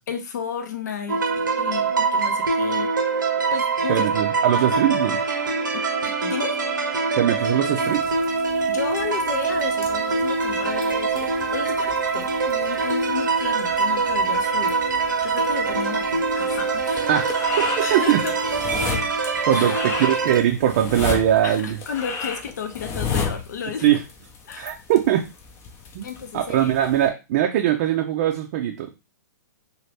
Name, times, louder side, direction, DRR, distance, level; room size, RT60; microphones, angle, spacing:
voice 1, 0.1-2.9 3.5-4.1 5.7-6.6 8.7-14.8 15.2-17.2 17.8-18.4 19.5-19.8 21.4-24.0 24.4-24.7 26.0-26.9, left 6 dB, 65° left, 7 dB, 0.7 m, -33 dB
sound 1, 1.1-20.4, right 4 dB, 85° right, 0.8 m, -24 dB
voice 2, 3.9-5.2 7.2-8.2 17.1-18.2 18.9-19.1 19.5-21.8 23.8-24.0 24.6-25.2 25.9-26.1 26.3-29.0, right 11 dB, 45° right, 2 dB, 0.5 m, -21 dB
sound 2, 7.8-27.1, left 5 dB, 25° left, 0.6 m, -35 dB
2.8 x 2.5 x 3.3 m, 0.28 s
hypercardioid pair, 125°, 10 cm